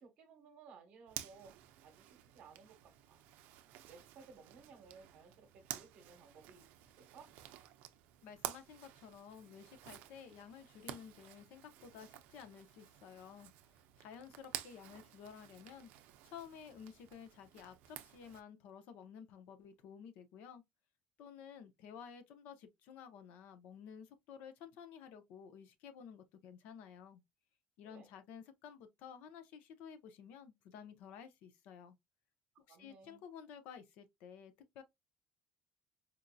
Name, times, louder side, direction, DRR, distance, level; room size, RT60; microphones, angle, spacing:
voice 1, 0.0-1.5 1.8-3.2 3.9-7.3 27.8-28.1 32.7-33.2, right 5 dB, 50° right, 1.0 m, -59 dB
Zipper (clothing), 1.1-18.4, right 13 dB, 75° right, 0.4 m, -51 dB
voice 2, 8.2-13.5 14.0-15.9 16.2-20.6 21.2-27.2 27.8-32.0 32.7-34.8, left 7 dB, 70° left, 0.7 m, -53 dB
4.4 x 2.6 x 2.2 m
cardioid pair, 180°, 3 cm